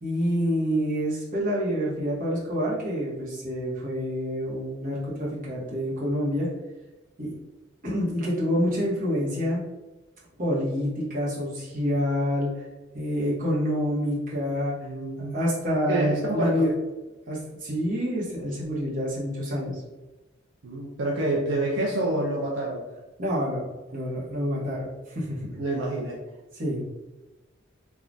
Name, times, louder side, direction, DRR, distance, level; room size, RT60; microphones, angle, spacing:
voice 1, 0.0-6.5 7.2-7.3 7.8-9.6 10.4-12.7 12.9-14.8 15.3-16.7 17.3-19.8 23.2-23.7 23.9-25.6 26.5-26.8, equal, 45° right, -6 dB, 1.0 m, -27 dB
voice 2, 14.8-15.4 15.9-16.7 20.6-22.8 25.6-26.2, right 2 dB, 70° right, -3 dB, 0.5 m, -27 dB
3.2 x 2.3 x 2.5 m, 1.1 s
head